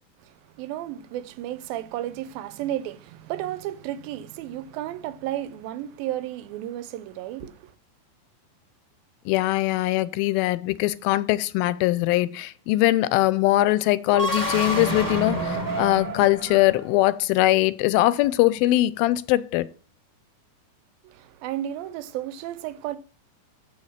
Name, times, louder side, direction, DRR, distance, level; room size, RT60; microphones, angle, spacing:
voice 1, 0.2-7.7 21.0-23.0, right 12 dB, 85° right, 2.4 m, -33 dB
voice 2, 9.3-19.7, left 16 dB, 85° left, 2.4 m, -21 dB
sound 1, 14.1-17.0, right 1 dB, 10° right, 0.9 m, -29 dB
7.1 x 6.5 x 7.4 m
omnidirectional pair, 4.1 m